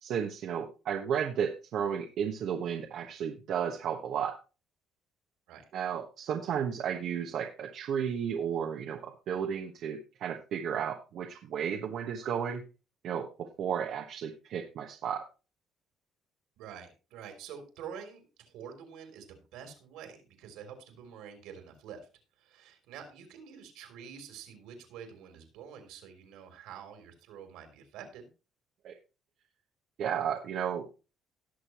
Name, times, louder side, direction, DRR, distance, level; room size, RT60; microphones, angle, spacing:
voice 1, 0.0-4.4 5.7-12.6 13.0-15.2 28.8-28.9 30.0-30.9, right 8 dB, 65° right, 2 dB, 1.3 m, -33 dB
voice 2, 16.6-22.0 22.4-28.3, right 7 dB, 85° right, 5 dB, 3.3 m, -47 dB
18.0 x 6.6 x 3.0 m, 0.33 s
cardioid pair, 105°, 0 cm